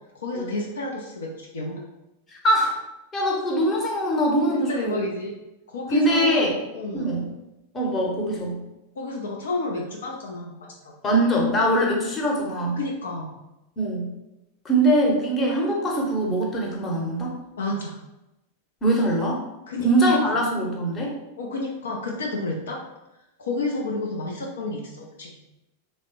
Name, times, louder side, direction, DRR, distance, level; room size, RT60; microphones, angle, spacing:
voice 1, 0.1-1.8 4.5-5.3 5.7-7.1 9.0-10.9 12.8-13.3 17.6-18.0 19.7-19.9 21.4-22.8 23.4-25.4, left 2 dB, 65° left, -1 dB, 0.4 m, -30 dB
voice 2, 2.3-2.7 3.1-5.0 5.9-6.6 6.9-7.3 7.7-8.6 11.0-12.8 13.8-14.1 14.6-17.4 18.8-19.4 19.8-21.1, right 1 dB, 20° left, -2 dB, 0.8 m, -22 dB
3.2 x 2.0 x 2.9 m, 0.94 s
figure-of-eight pair, 90°, 0 cm